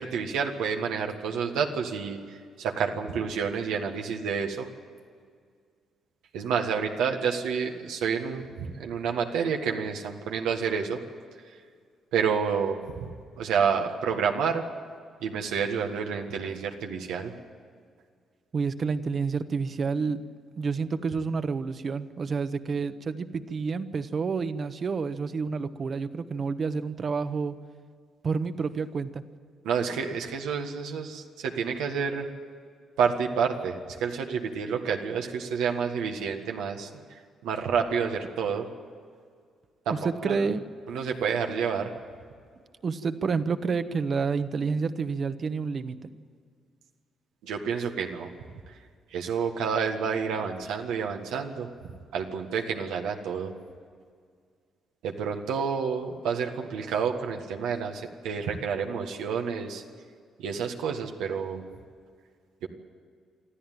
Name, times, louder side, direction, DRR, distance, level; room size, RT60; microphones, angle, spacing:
voice 1, 0.0-4.7 6.3-11.0 11.4-11.6 12.1-13.1 13.4-14.6 15.2-17.3 29.6-32.3 33.0-38.7 39.8-40.0 40.3-40.4 40.9-41.9 47.4-48.3 48.7-48.8 49.1-51.7 52.1-53.5 55.0-59.8 60.4-61.6 62.6-62.7, right 6 dB, 90° right, 3 dB, 1.6 m, -29 dB
voice 2, 18.5-20.2 20.5-27.6 28.2-29.2 39.9-40.6 42.8-46.0, right 5 dB, 45° right, 11 dB, 1.1 m, -29 dB
25.0 x 13.5 x 9.3 m, 2.1 s
cardioid pair, 90°, 0 cm